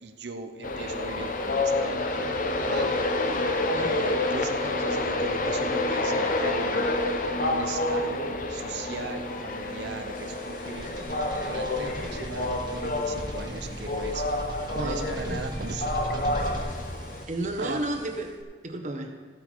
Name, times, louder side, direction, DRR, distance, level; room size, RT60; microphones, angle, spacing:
voice 1, 0.0-2.4 2.6-3.1 3.7-7.0 7.4-11.0 11.4-14.2 14.7-16.4 16.6-16.8 17.6-18.0, right 3 dB, 75° right, 7 dB, 0.8 m, -38 dB
Train, 0.6-17.2, left 2 dB, 45° left, 0.8 m, -28 dB
voice 2, 3.7-4.0 11.8-12.2 14.7-15.4 17.3-18.3 18.6-19.1, right 1 dB, 40° right, 3 dB, 1.3 m, -33 dB
sound 1, 10.1-18.4, right 1 dB, 25° right, 1.3 m, -38 dB
15.0 x 8.4 x 4.7 m, 1.5 s
head